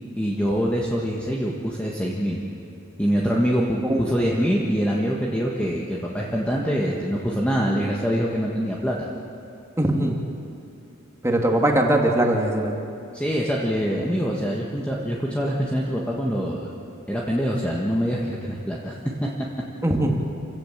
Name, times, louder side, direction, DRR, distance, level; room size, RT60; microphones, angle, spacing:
voice 1, 0.2-2.4 3.0-9.0 13.1-16.7 17.1-19.0 19.2-19.3, equal, 5° left, -3 dB, 1.7 m, -24 dB
voice 2, 9.8-10.2 11.2-12.8 19.8-20.2, right 1 dB, 15° right, 1 dB, 2.2 m, -21 dB
28.5 x 16.5 x 7.5 m, 2.6 s
head